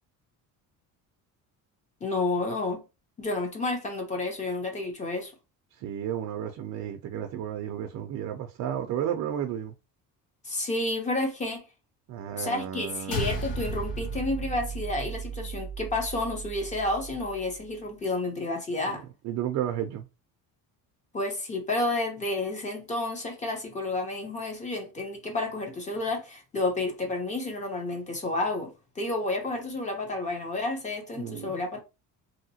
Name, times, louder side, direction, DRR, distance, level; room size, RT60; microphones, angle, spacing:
voice 1, 2.0-2.8 3.2-5.3 10.4-11.7 12.4-19.0 21.1-31.8, left 2 dB, 20° left, 0.7 m, -30 dB
voice 2, 5.7-9.7 12.1-13.3 18.8-20.1 31.2-31.8, right 10 dB, 55° right, 0.5 m, -33 dB
sound 1, 13.1-17.7, right 2 dB, 75° left, 1.1 m, -35 dB
3.0 x 2.8 x 2.7 m
cardioid pair, 170°, 35 cm